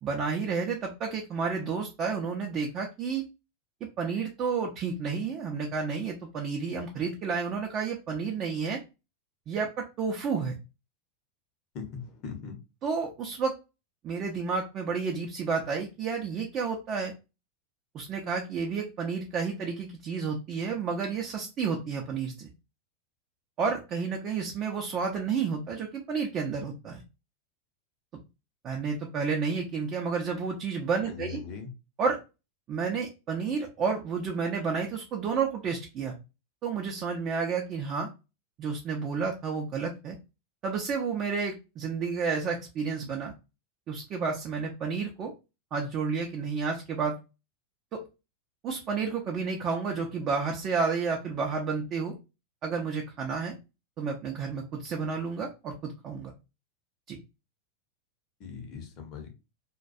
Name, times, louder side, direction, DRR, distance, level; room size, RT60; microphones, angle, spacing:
voice 1, 0.0-3.2 3.8-8.8 9.5-10.6 12.8-13.5 14.0-17.1 17.9-22.5 23.6-27.0 28.6-31.4 32.0-32.2 32.7-36.1 36.6-38.1 38.6-40.2 40.6-43.3 43.9-45.3 45.7-47.2 47.9-48.1 48.6-52.1 52.6-53.5 54.0-56.3 57.1-57.2, right 5 dB, 40° right, 0.5 m, -31 dB
voice 2, 11.7-12.6 31.1-31.7 58.4-59.3, left 6 dB, 45° left, 0.8 m, -40 dB
2.2 x 2.2 x 2.5 m
hypercardioid pair, 90°, 0 cm